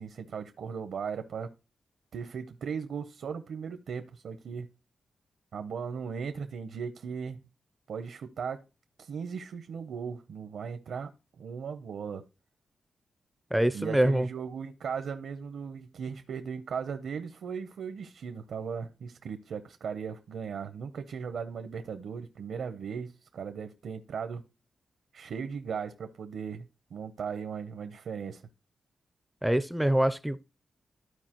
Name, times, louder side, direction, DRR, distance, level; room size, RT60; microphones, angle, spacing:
voice 1, 0.0-1.5 2.1-4.7 5.5-7.4 7.9-8.6 9.0-11.1 11.4-12.3 13.7-24.4 25.1-28.4, right 6 dB, 80° right, 0.7 m, -37 dB
voice 2, 13.5-14.3 29.4-30.4, right 1 dB, 5° right, 0.4 m, -25 dB
13.0 x 4.7 x 2.9 m
wide cardioid pair, 135°, 0 cm